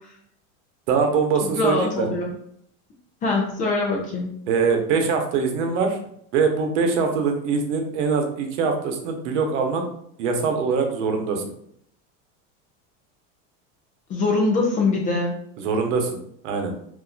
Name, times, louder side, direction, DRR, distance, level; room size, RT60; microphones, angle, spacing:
voice 1, 0.9-2.1 4.5-6.0 6.3-9.8 10.2-11.5 15.6-16.1 16.4-16.7, right 5 dB, 80° right, 3 dB, 0.9 m, -23 dB
voice 2, 1.6-2.3 3.2-4.4 14.1-15.4, left 3 dB, 20° left, 0 dB, 0.4 m, -23 dB
2.7 x 2.2 x 3.9 m, 0.68 s
supercardioid pair, 160°, 36 cm